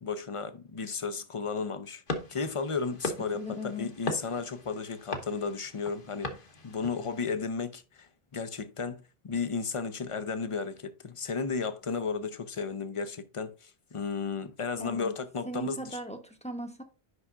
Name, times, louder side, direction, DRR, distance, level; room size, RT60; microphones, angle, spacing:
voice 1, 0.0-2.0 2.3-6.3 6.6-16.0, left 5 dB, 35° left, 0.6 m, -34 dB
sound 1, 2.1-7.2, left 2 dB, 60° left, 1.3 m, -39 dB
voice 2, 3.3-3.9 14.8-15.1 15.5-16.8, left 1 dB, 5° left, 0.9 m, -38 dB
9.5 x 5.7 x 2.5 m
omnidirectional pair, 1.0 m